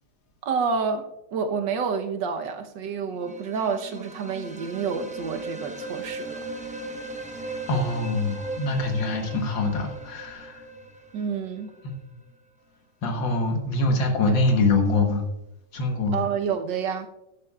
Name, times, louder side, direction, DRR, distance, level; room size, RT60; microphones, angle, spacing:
voice 1, 0.4-6.4 11.1-11.8 16.1-17.1, right 6 dB, 75° right, 1.6 m, -29 dB
sound 1, 3.1-11.9, right 2 dB, 10° right, 0.4 m, -38 dB
voice 2, 7.7-10.7 11.8-12.0 13.0-15.3 15.7-16.2, left 2 dB, 80° left, 2.0 m, -24 dB
13.0 x 11.0 x 2.4 m
omnidirectional pair, 2.0 m